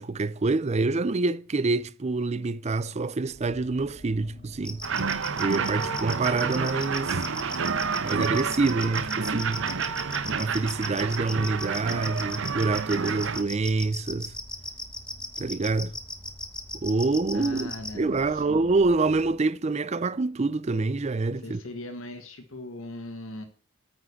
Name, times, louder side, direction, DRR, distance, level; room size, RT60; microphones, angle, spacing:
voice 1, 0.0-4.8 5.4-7.2 8.0-9.7 10.3-14.3 15.4-15.9 16.8-21.6, right 3 dB, 30° right, 0.5 m, -26 dB
sound 1, 3.2-19.5, equal, 30° left, 1.2 m, -50 dB
sound 2, 4.7-17.9, left 1 dB, 5° left, 1.1 m, -36 dB
Muckleford Station Steam Train, 4.8-13.4, right 5 dB, 60° right, 0.9 m, -29 dB
voice 2, 17.3-18.8 21.4-23.4, left 2 dB, 65° left, 1.5 m, -39 dB
9.4 x 6.2 x 8.3 m
head